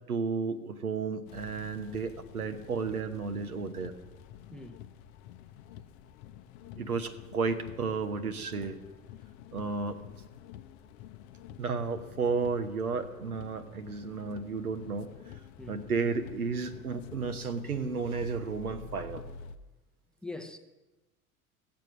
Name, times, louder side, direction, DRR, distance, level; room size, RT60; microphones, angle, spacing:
voice 1, 0.1-3.9 6.8-8.8 9.5-10.0 11.6-15.1 15.7-19.2, right 5 dB, 80° right, 1.1 m, -33 dB
sound 1, 1.3-19.6, left 9 dB, 50° left, 0.7 m, -49 dB
voice 2, 20.2-20.6, left 2 dB, ahead, 0.8 m, -42 dB
17.0 x 7.5 x 6.1 m
figure-of-eight pair, 80°, 43 cm